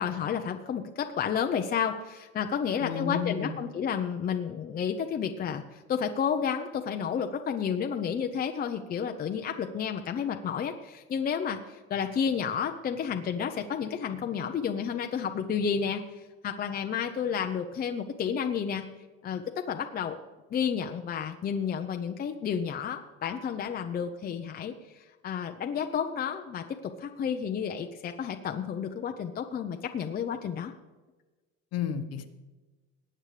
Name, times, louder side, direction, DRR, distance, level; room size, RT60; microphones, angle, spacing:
voice 1, 0.0-18.8 19.2-20.2 20.5-30.7, left 7 dB, 30° left, 5 dB, 0.7 m, -31 dB
voice 2, 2.8-3.6 31.7-32.3, left 8 dB, 55° left, 8 dB, 1.2 m, -32 dB
19.5 x 8.8 x 3.3 m, 1.2 s
cardioid pair, 140°, 31 cm